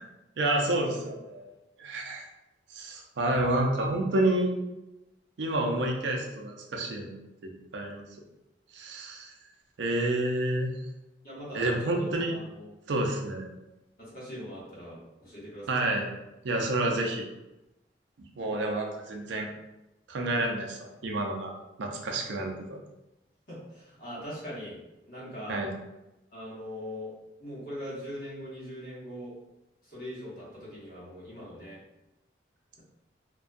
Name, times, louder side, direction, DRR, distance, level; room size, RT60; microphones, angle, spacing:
voice 1, 0.4-1.4 1.8-2.2 2.7-4.5 5.4-7.1 7.4-8.0 8.7-9.3 9.8-10.7 11.5-12.3 12.9-13.5 15.7-16.1 16.4-17.2 18.4-19.5 20.1-21.5 21.8-22.5 25.5-25.7, right 1 dB, 85° right, 1 dB, 0.5 m, -29 dB
voice 2, 11.2-12.7 14.0-15.8 23.5-24.8 25.0-25.6 26.3-27.1 27.4-29.4 29.8-31.8, equal, 55° left, -8 dB, 1.1 m, -41 dB
2.6 x 2.2 x 2.5 m, 0.97 s
head